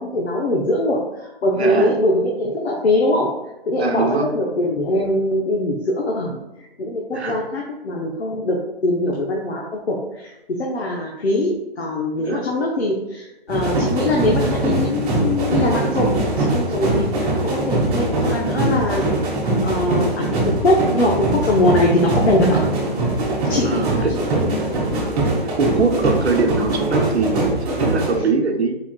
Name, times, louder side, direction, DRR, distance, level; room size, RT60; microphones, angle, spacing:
voice 1, 0.0-3.3 3.7-8.6 8.8-19.0 19.6-22.7 23.5-24.8, left 1 dB, 80° left, -2 dB, 1.0 m, -22 dB
voice 2, 1.5-1.9 3.8-4.3 7.1-7.4 12.2-12.4 23.6-24.1 25.4-28.8, right 4 dB, 90° right, 4 dB, 0.8 m, -22 dB
sound 1, 13.5-28.2, right 2 dB, 35° right, 1.6 m, -22 dB
4.5 x 4.5 x 2.4 m, 0.96 s
figure-of-eight pair, 140°, 32 cm